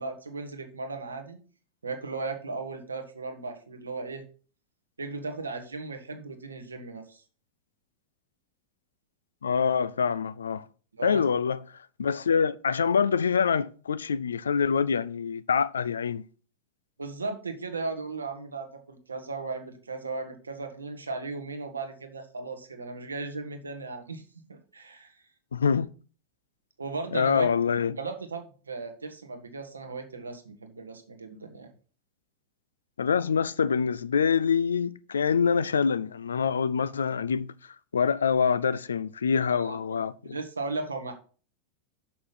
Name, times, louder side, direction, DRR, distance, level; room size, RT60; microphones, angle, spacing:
voice 1, 0.0-1.4 1.8-4.2 5.0-7.2 10.9-11.2 17.0-25.1 26.8-27.5 28.0-31.7 39.5-40.0 40.2-41.1, right 3 dB, 75° right, 1.3 m, -36 dB
voice 2, 9.4-10.7 11.0-11.6 12.0-16.2 25.5-25.9 27.1-28.0 33.0-37.5 37.9-40.4, left 6 dB, 70° left, 0.4 m, -25 dB
6.3 x 5.9 x 5.7 m
figure-of-eight pair, 90°, 0 cm